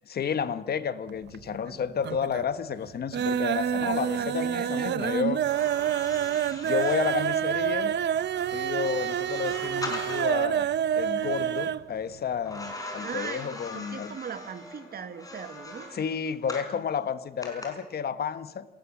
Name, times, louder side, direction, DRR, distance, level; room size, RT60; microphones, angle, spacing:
voice 1, 0.1-5.4 6.6-7.9 8.5-10.7 11.0-14.2 15.9-18.7, left 7 dB, 65° left, 12 dB, 1.2 m, -31 dB
sound 1, 1.1-1.7 2.0-2.5 2.8-11.9 12.1-12.2 12.6-12.7, right 9 dB, 85° right, 0.7 m, -28 dB
voice 2, 4.1-5.2 13.0-16.0, right 7 dB, 60° right, 10 dB, 1.6 m, -39 dB
sound 2, 5.4-10.5 12.5-16.8 17.4-17.7, left 2 dB, 20° left, 5.4 m, -41 dB
27.0 x 18.0 x 7.3 m, 1.1 s
wide cardioid pair, 160°, 17 cm